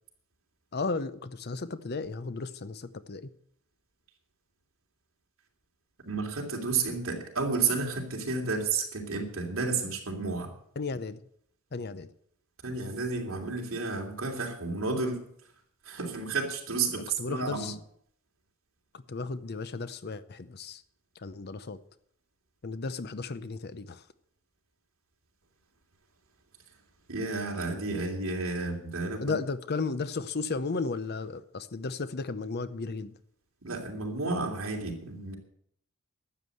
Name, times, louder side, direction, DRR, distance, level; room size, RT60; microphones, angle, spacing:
voice 1, 0.7-3.3 10.8-11.2 11.7-12.1 17.2-17.8 18.9-20.8 21.2-21.8 22.6-24.0 29.2-33.1, left 4 dB, 50° left, 0.7 m, -34 dB
voice 2, 6.0-10.5 12.6-15.2 15.8-17.7 27.1-29.2 33.6-35.4, right 4 dB, 65° right, 3.0 m, -31 dB
12.5 x 8.1 x 7.8 m
head